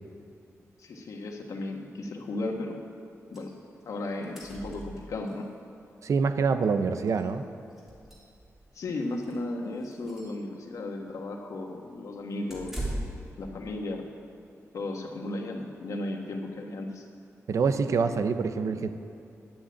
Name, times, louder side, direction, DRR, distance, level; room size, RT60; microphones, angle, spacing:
voice 1, 0.8-2.8 3.3-3.5 3.8-5.5 8.7-12.8 13.4-14.0 14.7-17.0, left 2 dB, 80° left, 2 dB, 1.5 m, -35 dB
sound 1, 3.3-3.5 3.8-3.9 4.1-5.4 6.6-6.7 7.1-7.2 7.7-8.7 9.1-9.4 9.8-10.4 12.5-13.3, right 1 dB, 5° right, 2.9 m, -39 dB
voice 2, 6.0-7.4 17.5-18.9, right 5 dB, 70° right, 9 dB, 0.7 m, -26 dB
10.5 x 8.6 x 8.7 m, 2.5 s
wide cardioid pair, 145°, 6 cm